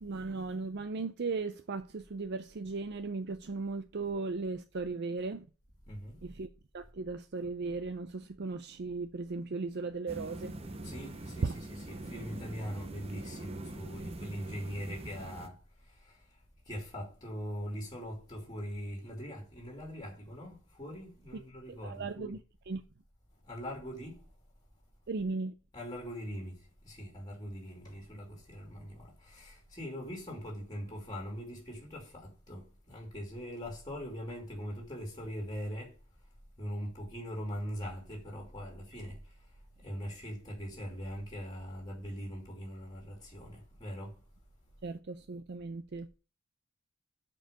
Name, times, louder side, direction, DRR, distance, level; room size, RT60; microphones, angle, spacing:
voice 1, 0.0-5.5 6.2-6.5 6.7-10.6 11.4-11.6 21.8-22.4 22.7-22.8 25.1-25.5 44.8-46.1, right 3 dB, 55° right, 0.5 m, -36 dB
voice 2, 5.9-6.2 10.8-11.5 11.9-15.6 16.7-22.4 23.5-24.2 25.7-26.5 26.8-35.9 36.6-39.2 39.8-44.1, equal, 20° left, 2.5 m, -41 dB
sound 1, 10.1-15.5, right 2 dB, 30° right, 0.8 m, -43 dB
7.6 x 4.5 x 6.6 m
head